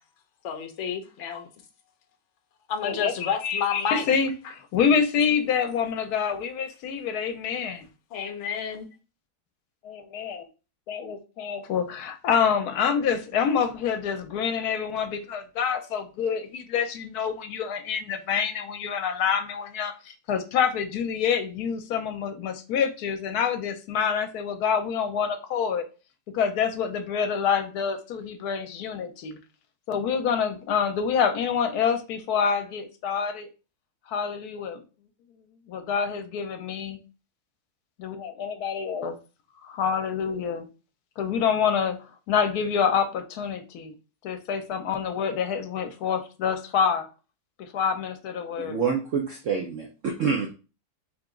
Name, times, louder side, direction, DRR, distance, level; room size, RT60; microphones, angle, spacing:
voice 1, 0.4-1.5 2.7-4.1 8.1-8.9, left 7 dB, 55° left, 0.9 m, -30 dB
voice 2, 2.8-7.9 9.8-10.5 10.9-25.8 26.3-29.4 29.9-33.5 34.1-34.8 35.7-37.0 38.0-39.2 39.6-40.7 41.2-43.9 44.2-47.1 47.6-48.8, left 7 dB, 75° left, 1.1 m, -27 dB
voice 3, 48.6-50.5, right 6 dB, 65° right, 0.8 m, -27 dB
3.5 x 2.9 x 3.7 m
omnidirectional pair, 1.7 m